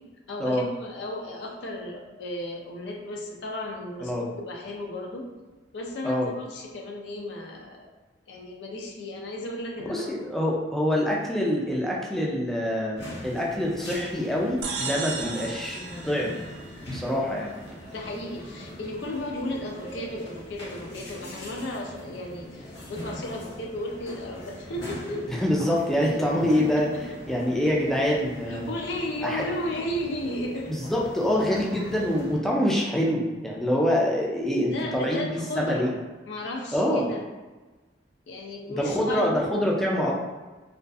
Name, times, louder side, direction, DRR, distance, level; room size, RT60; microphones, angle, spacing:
voice 1, 0.3-5.3 5.7-7.9 8.3-10.3 15.2-15.5 17.9-25.4 26.0-26.2 26.5-26.6 26.9-27.0 28.5-30.7 34.7-35.9 36.3-37.3 38.3-39.3, left 1 dB, 90° left, 0 dB, 0.5 m, -34 dB
voice 2, 9.9-15.8 16.0-16.4 16.9-17.5 25.3-26.9 27.3-28.7 29.2-29.4 30.7-36.0 36.7-37.1 38.7-40.2, equal, ahead, -3 dB, 0.3 m, -25 dB
sound 1, 13.0-32.4, equal, 70° left, 0.8 m, -41 dB
sound 2, 14.6-17.2, right 4 dB, 80° right, 0.3 m, -35 dB
2.5 x 2.3 x 2.3 m, 1.2 s
head